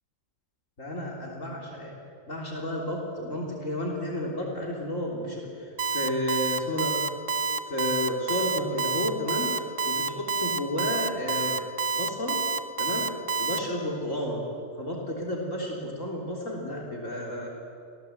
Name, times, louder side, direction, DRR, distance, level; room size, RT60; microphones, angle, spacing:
voice 1, 0.8-1.9 2.3-6.9 7.7-11.6 11.9-12.4 12.8-13.1 13.4-14.5 14.8-17.5, left 1 dB, 65° left, -2 dB, 3.9 m, -32 dB
Alarm, 5.8-13.6, right 4 dB, 65° right, 1.3 m, -28 dB
29.0 x 17.5 x 8.1 m, 2.4 s
omnidirectional pair, 1.4 m